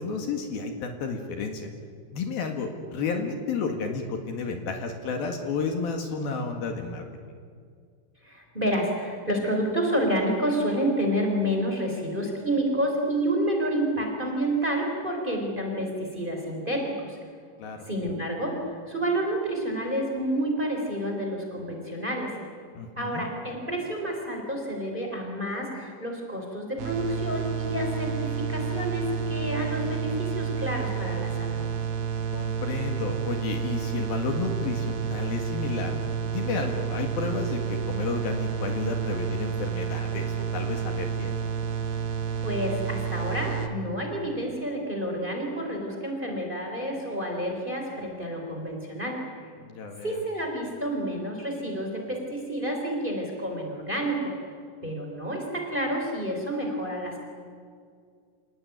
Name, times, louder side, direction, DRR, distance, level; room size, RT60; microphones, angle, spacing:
voice 1, 0.0-1.7 2.1-7.0 17.6-17.9 22.7-23.3 32.3-36.0 36.3-41.4 49.6-50.2, left 4 dB, 65° left, 4 dB, 3.6 m, -31 dB
voice 2, 8.2-17.2 17.9-22.3 23.0-31.6 42.4-49.2 50.0-54.3 54.8-57.2, right 1 dB, 10° right, 2 dB, 3.9 m, -29 dB
sound 1, 26.8-43.7, right 7 dB, 85° right, 3.7 m, -30 dB
28.0 x 18.0 x 9.4 m, 2.1 s
omnidirectional pair, 4.8 m